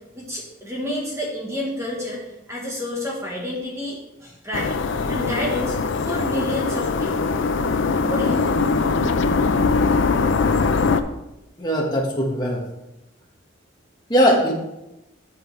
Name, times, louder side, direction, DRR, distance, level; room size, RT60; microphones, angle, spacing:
voice 1, 0.1-2.2 2.5-4.8 5.1-7.3 8.1-8.7, left 1 dB, 15° right, -3 dB, 1.2 m, -29 dB
sound 1, 4.5-11.0, left 4 dB, 65° left, 0.5 m, -21 dB
voice 2, 11.6-12.6 14.1-14.5, equal, 20° left, -2 dB, 1.5 m, -19 dB
7.9 x 7.9 x 3.3 m, 0.92 s
head